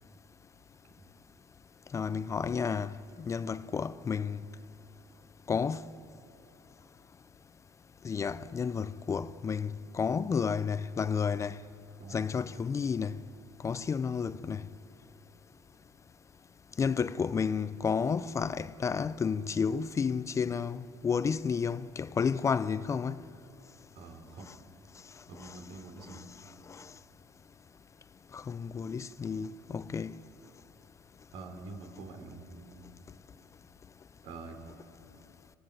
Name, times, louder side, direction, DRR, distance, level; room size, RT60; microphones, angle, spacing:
voice 1, 1.9-2.9 3.3-4.4 5.5-5.9 8.0-11.6 12.1-13.1 13.6-14.6 16.8-23.2 26.7-26.9 28.3-30.1, left 6 dB, 30° left, 0.6 m, -31 dB
voice 2, 23.9-24.5 25.3-26.3 31.3-32.8 34.2-34.6, right 3 dB, 65° right, 3.5 m, -46 dB
27.0 x 15.5 x 9.9 m
supercardioid pair, 95°, 10 cm